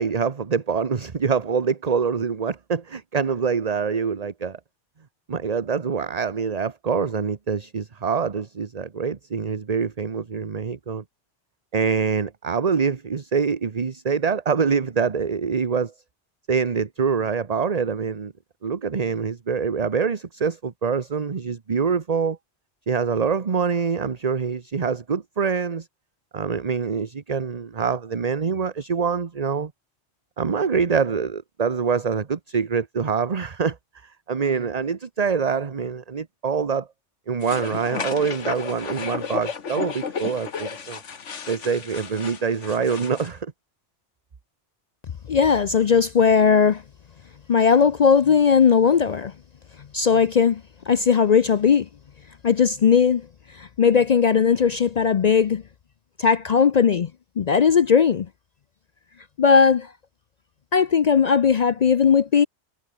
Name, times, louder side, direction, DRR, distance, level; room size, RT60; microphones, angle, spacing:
voice 1, 0.0-4.6 5.3-11.0 11.7-15.9 16.5-18.3 18.6-22.4 22.9-25.9 26.3-29.7 30.4-33.8 34.0-36.9 37.3-41.0 41.5-43.5, right 6 dB, 35° right, 1.0 m, -25 dB
sound 1, 37.4-43.3, left 6 dB, 85° left, 1.8 m, -33 dB
voice 2, 45.3-46.8 47.5-49.3 49.9-50.6 50.9-51.9 52.4-53.3 53.6-55.6 56.2-57.1 57.4-58.3 59.4-59.9 60.7-62.5, left 6 dB, 50° left, 0.5 m, -18 dB
omnidirectional pair, 1.2 m